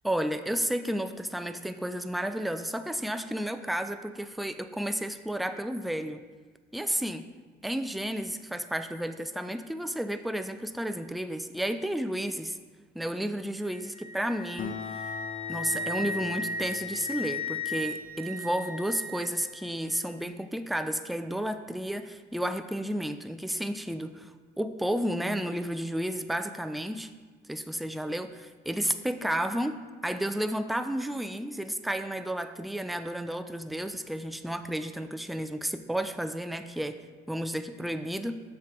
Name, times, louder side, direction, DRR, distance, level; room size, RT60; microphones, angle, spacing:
voice 1, 0.0-6.2 6.7-7.3 7.6-12.6 12.9-15.0 15.5-27.1 27.5-37.0 37.3-38.4, right 1 dB, ahead, 9 dB, 0.4 m, -32 dB
Wind instrument woodwind instrument, 13.6-19.6, left 2 dB, 20° right, 1.3 m, -36 dB
Acoustic guitar, 14.6-19.4, left 7 dB, 45° left, 0.6 m, -43 dB
7.2 x 6.2 x 3.6 m, 1.5 s
cardioid pair, 90°, 20 cm